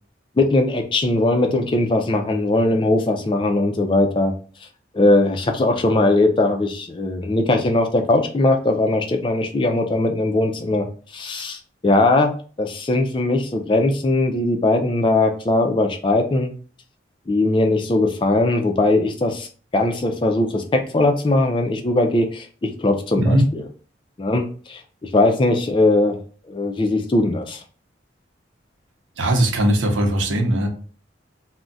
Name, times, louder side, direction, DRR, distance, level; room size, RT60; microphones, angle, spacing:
voice 1, 0.4-4.3 4.9-10.9 11.1-12.3 12.6-16.5 17.3-19.5 19.7-23.6 24.2-26.2 26.5-27.6, left 2 dB, 25° left, 3 dB, 0.3 m, -20 dB
voice 2, 29.2-30.7, right 1 dB, 85° right, 3 dB, 0.7 m, -19 dB
2.3 x 2.1 x 3.8 m, 0.41 s
head